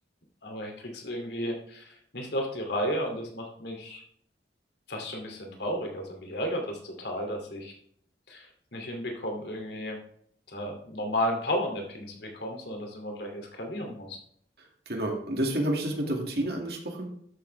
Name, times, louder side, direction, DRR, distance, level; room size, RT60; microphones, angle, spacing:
voice 1, 0.4-4.0 4.9-7.7 8.3-8.5 8.7-10.0 10.5-14.2, equal, 70° left, 2 dB, 2.6 m, -33 dB
voice 2, 14.6-17.1, right 1 dB, 60° right, 2 dB, 2.1 m, -30 dB
13.0 x 7.0 x 3.3 m, 0.67 s
head